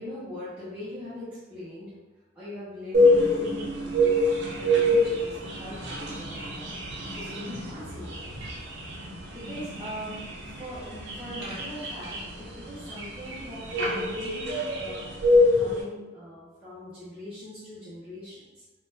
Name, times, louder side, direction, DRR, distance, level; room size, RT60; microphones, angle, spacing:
voice 1, 0.0-1.9 2.3-8.4 9.3-10.2 10.6-18.6, left 1 dB, 10° right, -13 dB, 0.6 m, -41 dB
Birds-Morning Dove & Song Birds - St Augustine-April, 2.9-15.8, left 1 dB, 65° right, 0.5 m, -26 dB
3.4 x 2.2 x 2.7 m, 1.1 s
head